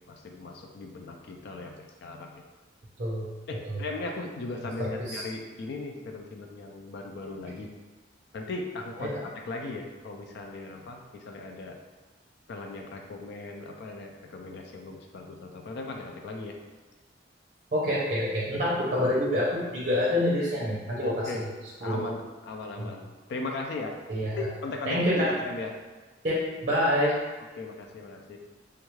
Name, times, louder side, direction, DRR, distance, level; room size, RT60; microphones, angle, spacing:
voice 1, 0.1-2.4 3.5-7.7 8.3-11.8 12.5-16.6 21.0-21.4 21.8-23.0 23.3-24.0 24.4-25.7 26.9-27.0 27.6-28.4, left 3 dB, 60° left, 2 dB, 0.4 m, -38 dB
voice 2, 4.8-5.2 9.0-9.1 17.7-21.1 21.8-22.0 22.8-22.9 24.1-24.4 24.9-25.3 26.2-27.2, left 1 dB, 45° right, -6 dB, 0.6 m, -26 dB
3.4 x 2.3 x 3.1 m, 1.3 s
head